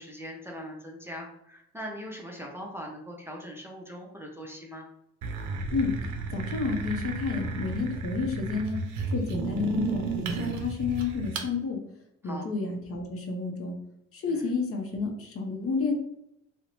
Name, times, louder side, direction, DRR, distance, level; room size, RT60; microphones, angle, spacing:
voice 1, 0.0-4.9 12.2-12.5 14.3-14.5, equal, 10° right, -2 dB, 0.5 m, -41 dB
sound 1, 5.2-11.5, right 4 dB, 70° right, 0.5 m, -33 dB
voice 2, 6.3-8.8 9.1-11.8 12.2-13.8 14.1-15.9, left 4 dB, 50° left, 3 dB, 0.6 m, -30 dB
2.5 x 2.1 x 2.9 m, 0.77 s
cardioid pair, 90°, 30 cm